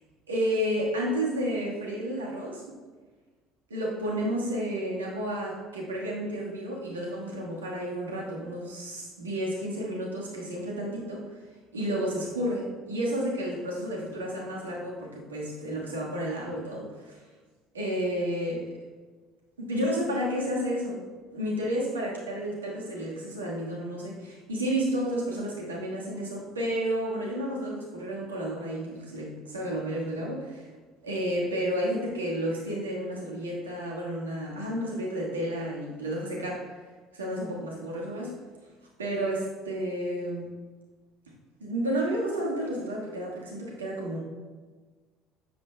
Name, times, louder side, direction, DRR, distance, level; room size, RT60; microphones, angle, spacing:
voice 1, 0.3-2.8 3.7-11.3 11.7-17.2 17.7-18.7 19.6-21.0 21.3-30.7 31.0-36.6 37.1-38.3 39.0-40.5 41.6-44.2, equal, 85° right, -3 dB, 1.5 m, -31 dB
10.0 x 7.5 x 2.2 m, 1.4 s
hypercardioid pair, 60°, 0 cm